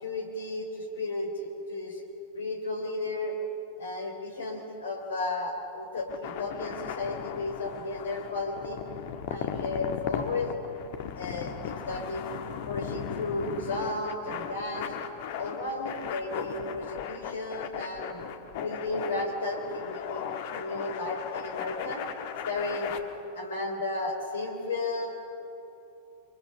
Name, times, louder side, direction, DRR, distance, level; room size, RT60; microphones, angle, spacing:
voice 1, 0.0-2.0 2.4-3.4 3.8-8.8 9.3-10.5 11.2-12.2 12.7-14.9 15.3-18.2 18.6-22.0 22.5-23.0 23.4-25.2, left 2 dB, 65° left, 4 dB, 3.5 m, -33 dB
sound 1, 6.0-23.0, left 8 dB, 50° left, 1.5 m, -37 dB
24.0 x 24.0 x 6.7 m, 3.0 s
figure-of-eight pair, 90°, 0 cm